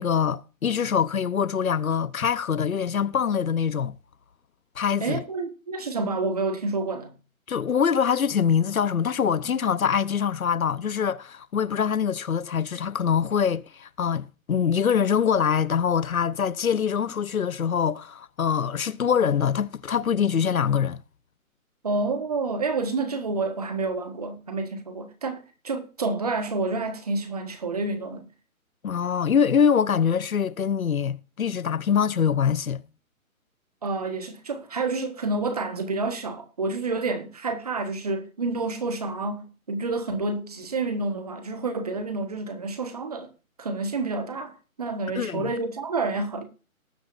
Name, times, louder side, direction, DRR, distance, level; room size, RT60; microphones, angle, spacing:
voice 1, 0.0-4.0 4.8-5.2 7.5-21.0 28.8-32.8 45.1-45.5, left 7 dB, 75° left, 0.9 m, -24 dB
voice 2, 5.0-7.1 21.8-28.3 33.8-43.3 43.6-46.5, right 3 dB, 25° right, 1.5 m, -29 dB
19.0 x 8.0 x 2.6 m
hypercardioid pair, 175°, 43 cm